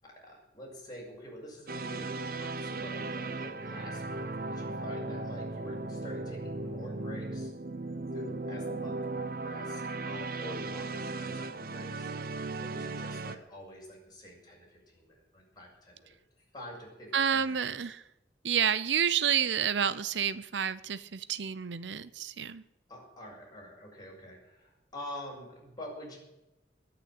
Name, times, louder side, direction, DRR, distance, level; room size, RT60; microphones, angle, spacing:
voice 1, 0.0-7.5 8.1-12.1 12.6-16.2 16.5-17.6 22.9-26.2, equal, 25° left, -3 dB, 6.8 m, -47 dB
sound 1, 1.7-13.4, right 2 dB, 55° right, 0.9 m, -37 dB
voice 2, 17.1-18.0 18.4-22.6, right 8 dB, 90° right, 16 dB, 0.7 m, -29 dB
20.5 x 7.0 x 9.6 m, 0.94 s
head